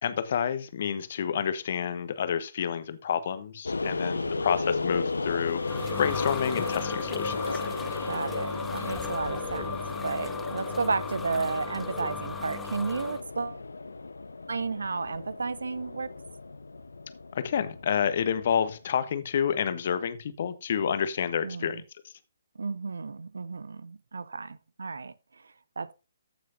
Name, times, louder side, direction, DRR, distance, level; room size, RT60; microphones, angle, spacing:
voice 1, 0.0-5.6 6.0-7.4 17.3-21.8, left 8 dB, 45° left, 0.9 m, -29 dB
sound 1, 3.7-18.9, left 3 dB, 70° left, 0.6 m, -34 dB
voice 2, 3.8-4.8 8.1-13.6 14.5-16.1 21.4-21.8 22.6-25.1 25.4-25.9, right 4 dB, 65° right, 0.6 m, -33 dB
sound 2, 5.2-13.2, left 5 dB, 5° left, 0.7 m, -38 dB
14.0 x 6.2 x 2.7 m
figure-of-eight pair, 130°, 0 cm